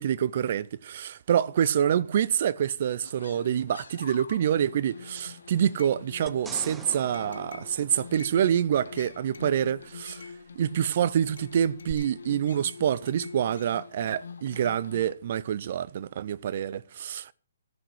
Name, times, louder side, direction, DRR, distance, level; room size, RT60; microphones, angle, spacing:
voice 1, 0.0-17.3, right 9 dB, 50° right, 0.5 m, -27 dB
sound 1, 3.0-15.1, left 5 dB, 75° left, 1.3 m, -45 dB
sound 2, 6.3-8.8 11.9-12.0, right 5 dB, 10° right, 0.6 m, -45 dB
14.5 x 6.3 x 6.1 m
hypercardioid pair, 140°, 0 cm